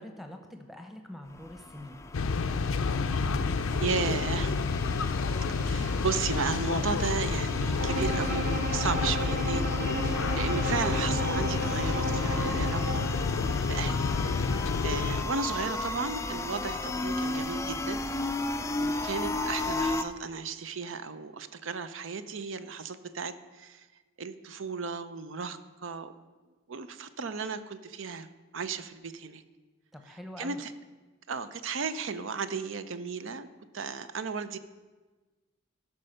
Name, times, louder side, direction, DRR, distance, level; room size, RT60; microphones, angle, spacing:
voice 1, 0.0-2.0 29.9-30.6, left 1 dB, ahead, 4 dB, 0.9 m, -44 dB
sound 1, 1.3-20.0, left 2 dB, 15° left, 0.3 m, -35 dB
sound 2, 2.1-15.2, left 4 dB, 80° left, 0.5 m, -29 dB
voice 2, 3.8-4.6 5.4-13.1 13.7-14.0 14.4-18.0 18.8-23.9 24.2-26.1 26.7-28.3 28.5-29.4 30.4-30.7 31.3-33.5 33.7-34.6, right 5 dB, 70° right, 12 dB, 0.6 m, -34 dB
Bowed string instrument, 7.8-13.2, right 1 dB, 40° right, 1.1 m, -34 dB
13.0 x 5.6 x 6.5 m, 1.3 s
head